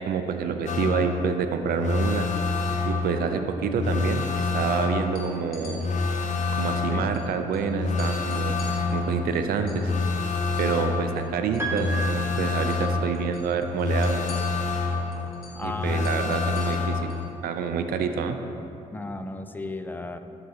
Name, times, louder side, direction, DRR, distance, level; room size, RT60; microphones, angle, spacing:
voice 1, 0.0-2.2 2.8-5.8 6.6-8.6 8.9-9.9 10.6-14.2 15.6-17.1 17.4-18.4, right 6 dB, 70° right, 6 dB, 0.5 m, -27 dB
sound 1, 0.7-17.3, left 4 dB, 50° left, 0.7 m, -28 dB
sound 2, 5.0-5.8 7.1-7.2 7.5-7.6 8.0-10.8 11.0-12.2 12.5-12.8 13.1-17.3, left 3 dB, 70° left, 1.2 m, -48 dB
Piano, 11.6-13.3, right 4 dB, 15° right, 1.4 m, -34 dB
voice 2, 15.6-16.2 18.9-20.2, left 2 dB, 10° left, 8 dB, 0.5 m, -35 dB
11.5 x 3.9 x 2.8 m, 2.7 s
supercardioid pair, 55°, 16 cm